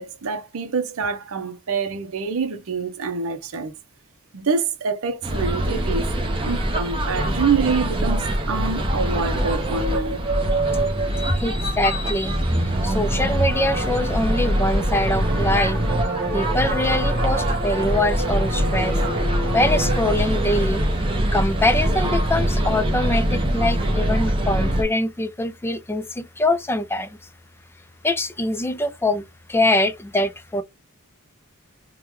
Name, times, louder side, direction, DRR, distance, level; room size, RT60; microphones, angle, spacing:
voice 1, 0.0-3.7 4.3-6.1 6.4-10.2, right 5 dB, 65° right, 0.6 m, -26 dB
sound 1, 5.2-24.8, right 1 dB, 25° right, 0.8 m, -23 dB
voice 2, 11.2-12.4 12.6-15.8 16.3-19.0 19.5-20.8 21.3-27.2 28.0-30.6, left 1 dB, 10° left, 0.4 m, -23 dB
sound 2, 12.6-20.1, right 1 dB, 45° right, 1.5 m, -30 dB
3.6 x 2.2 x 3.0 m
head